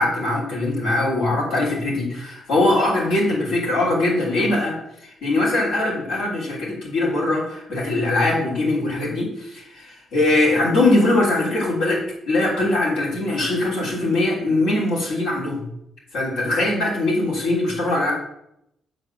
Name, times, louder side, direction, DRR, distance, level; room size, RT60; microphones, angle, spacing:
voice 1, 0.0-4.8 5.2-15.6 16.1-18.1, left 2 dB, 85° left, -4 dB, 3.2 m, -21 dB
7.8 x 4.0 x 6.5 m, 0.80 s
cardioid pair, 90°, 0 cm